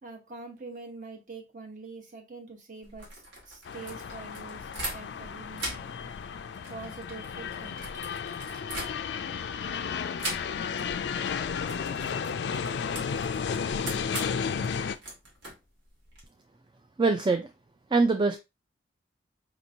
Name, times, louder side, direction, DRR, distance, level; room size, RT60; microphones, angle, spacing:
voice 1, 0.0-5.9 6.7-7.9, right 3 dB, 45° right, 1.0 m, -44 dB
sound 1, 2.8-5.3 5.5-9.4 10.2-10.9 11.1-11.3 11.6-16.2, right 1 dB, 90° right, 1.7 m, -40 dB
sound 2, 3.7-15.0, left 6 dB, 70° left, 0.4 m, -33 dB
voice 2, 17.0-17.5 17.9-18.4, right 3 dB, 25° right, 0.3 m, -23 dB
5.0 x 3.0 x 2.6 m
head